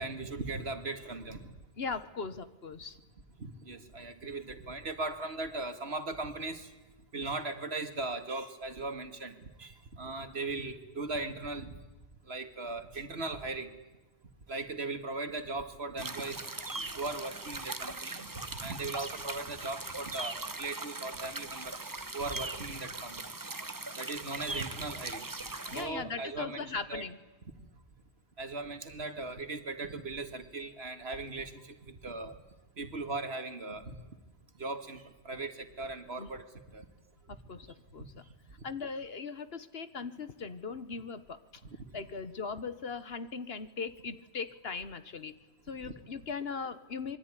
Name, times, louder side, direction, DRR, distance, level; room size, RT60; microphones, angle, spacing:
voice 1, 0.0-1.5 3.4-6.7 7.1-11.8 12.3-13.7 14.5-16.5 17.0-18.3 18.6-21.9 22.1-23.3 23.9-25.3 25.7-27.1 28.4-32.4 32.8-34.0 34.6-36.9 38.0-38.1 45.8-45.9, right 3 dB, 70° right, 8 dB, 2.3 m, -38 dB
voice 2, 1.8-3.0 25.7-27.2 36.2-36.3 37.5-37.7 37.9-38.2 38.6-41.4 41.9-45.3 45.7-47.2, left 5 dB, 65° left, 12 dB, 1.5 m, -39 dB
sound 1, 16.0-25.9, right 2 dB, 20° right, 1.0 m, -40 dB
26.5 x 23.0 x 9.9 m, 1.1 s
omnidirectional pair, 1.1 m